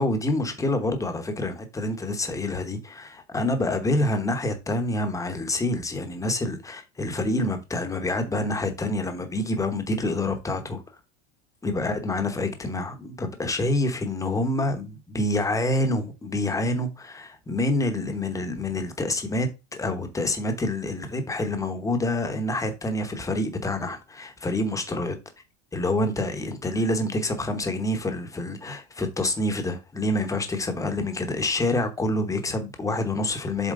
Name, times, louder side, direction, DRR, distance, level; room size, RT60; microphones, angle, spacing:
voice 1, 0.0-10.8 11.6-25.2 25.7-33.7, left 1 dB, 10° left, 1.0 m, -27 dB
7.6 x 4.3 x 3.7 m
cardioid pair, 155°, 35 cm